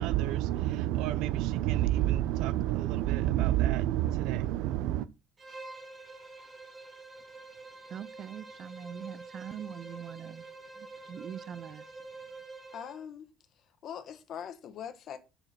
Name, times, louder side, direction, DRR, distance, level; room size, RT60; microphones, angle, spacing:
voice 1, 0.0-5.1, right 14 dB, 85° right, 0.6 m, -28 dB
Bowed string instrument, 5.4-13.1, right 3 dB, 20° right, 1.4 m, -47 dB
voice 2, 7.9-10.4 10.8-11.8, right 9 dB, 40° right, 0.4 m, -43 dB
voice 3, 12.7-13.3 13.8-15.2, left 8 dB, 50° left, 1.2 m, -41 dB
7.7 x 4.9 x 6.0 m
cardioid pair, 145°, 0 cm